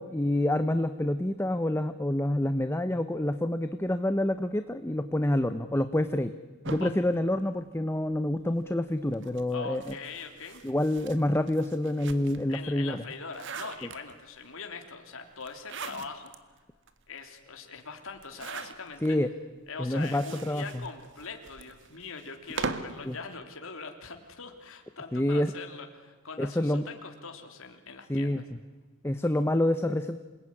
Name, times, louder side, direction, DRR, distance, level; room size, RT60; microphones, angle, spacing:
voice 1, 0.0-6.3 6.7-10.0 10.6-13.0 19.0-19.3 19.8-20.7 23.1-23.2 25.1-25.5 26.4-26.8 28.1-28.4 29.0-30.2, left 1 dB, 10° left, 9 dB, 0.8 m, -27 dB
sound 1, 6.6-8.2 9.1-12.6 13.0-14.4 15.4-16.4 16.9-17.0 17.2-17.3 18.2-19.1 19.8-23.0, right 4 dB, 55° right, 1.8 m, -41 dB
voice 2, 9.5-10.6 12.5-16.3 17.1-19.2 19.7-28.3, left 4 dB, 65° left, 4 dB, 3.3 m, -42 dB
27.5 x 20.5 x 9.9 m, 1.3 s
head